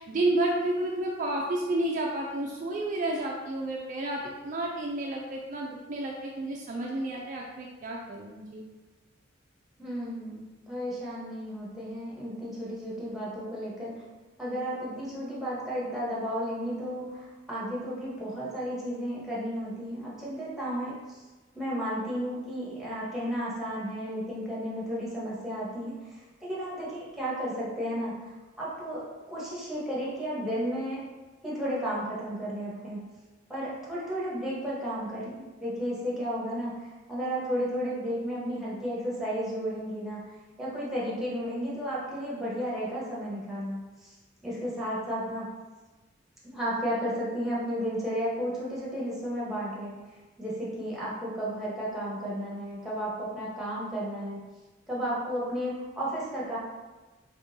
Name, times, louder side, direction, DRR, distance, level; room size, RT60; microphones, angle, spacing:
voice 1, 0.0-8.6, right 1 dB, 40° right, -1 dB, 0.3 m, -31 dB
voice 2, 9.8-13.9 14.4-21.2 21.5-28.1 28.6-31.0 31.4-33.0 33.5-35.3 35.6-40.2 40.6-44.2 44.4-45.5 46.4-49.9 50.4-54.4 54.9-56.6, equal, ahead, -7 dB, 1.0 m, -33 dB
3.6 x 3.5 x 2.7 m, 1.2 s
head